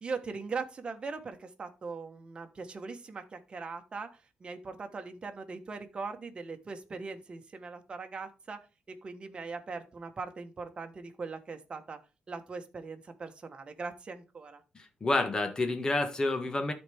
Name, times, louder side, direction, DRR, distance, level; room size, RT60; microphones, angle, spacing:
voice 1, 0.0-8.6 8.9-12.0 12.3-14.6, right 4 dB, 35° right, 1.4 m, -40 dB
voice 2, 14.7-16.7, left 2 dB, 25° left, 1.6 m, -29 dB
13.0 x 4.5 x 3.6 m
cardioid pair, 115°, 3 cm